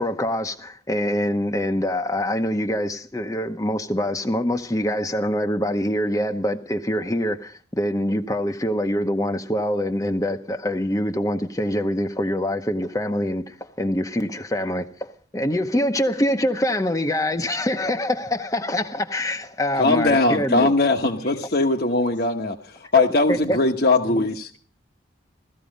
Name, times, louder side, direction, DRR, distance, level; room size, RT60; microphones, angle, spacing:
voice 1, 0.0-20.7 22.9-23.6, left 1 dB, 15° left, 5 dB, 0.8 m, -25 dB
voice 2, 19.8-24.5, left 2 dB, 55° left, 3 dB, 1.1 m, -20 dB
voice 3, 21.0-21.4 21.9-22.1 24.0-24.6, left 1 dB, 85° left, 6 dB, 2.2 m, -40 dB
17.0 x 14.0 x 5.2 m, 0.43 s
head